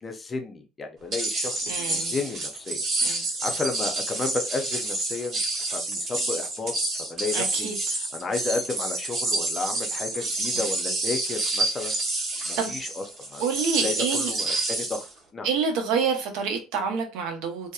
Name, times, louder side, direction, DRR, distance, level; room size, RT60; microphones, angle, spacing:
voice 1, 0.0-2.8 3.4-5.4 5.7-6.8 7.1-7.7 8.1-11.9 12.4-13.0 13.3-13.4 13.8-15.1 15.3-15.5, left 3 dB, 20° left, 0.4 m, -32 dB
sound 1, 1.1-15.1, right 2 dB, 40° right, 0.9 m, -29 dB
voice 2, 1.7-2.1 3.0-3.2 7.3-7.7 12.6-12.7 13.4-14.3 15.4-17.7, right 5 dB, 85° right, 0.8 m, -27 dB
2.7 x 2.0 x 2.3 m
cardioid pair, 160°, 0 cm